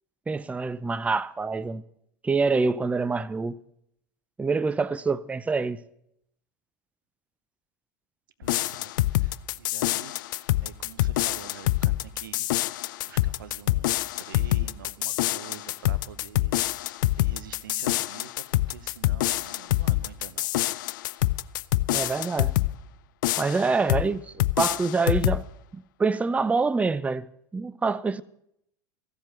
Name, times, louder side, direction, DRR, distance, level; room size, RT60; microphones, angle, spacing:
voice 1, 0.3-1.8 2.2-3.6 4.4-5.8 21.9-22.6 23.4-25.5 25.7-28.2, right 4 dB, 10° right, 0.5 m, -26 dB
sound 1, 8.4-22.8 23.2-24.1 24.4-25.4, left 17 dB, 70° left, 0.4 m, -26 dB
voice 2, 8.4-12.5 13.0-16.9 17.2-20.5, right 8 dB, 85° right, 0.8 m, -46 dB
14.5 x 7.4 x 7.9 m
hypercardioid pair, 85°, 11 cm